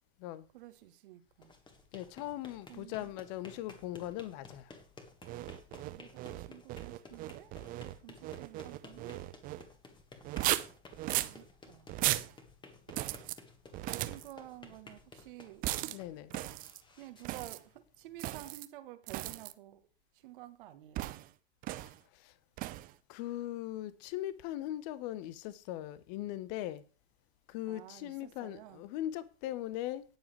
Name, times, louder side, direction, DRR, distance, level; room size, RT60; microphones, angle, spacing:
voice 1, 0.5-1.5 2.7-3.1 5.9-7.5 8.0-9.2 11.0-11.9 13.8-16.0 16.9-19.8 20.1-21.1 27.6-28.8, right 14 dB, 50° right, 1.5 m, -51 dB
sound 1, 1.3-18.3, left 3 dB, 15° left, 1.9 m, -55 dB
voice 2, 1.9-4.7 15.9-16.4 22.1-22.3 23.1-26.8 27.5-30.0, left 14 dB, 35° left, 1.0 m, -40 dB
sound 2, 5.2-9.6 10.2-11.4 11.9-12.3 12.9-13.4 13.7-14.3 15.6-16.0 16.3-16.8 17.2-17.6 18.2-18.7 19.1-19.5 20.9-21.3 21.6-22.0 22.6-22.9, right 16 dB, 25° right, 0.7 m, -36 dB
18.5 x 7.1 x 3.3 m
figure-of-eight pair, 105°, 35 cm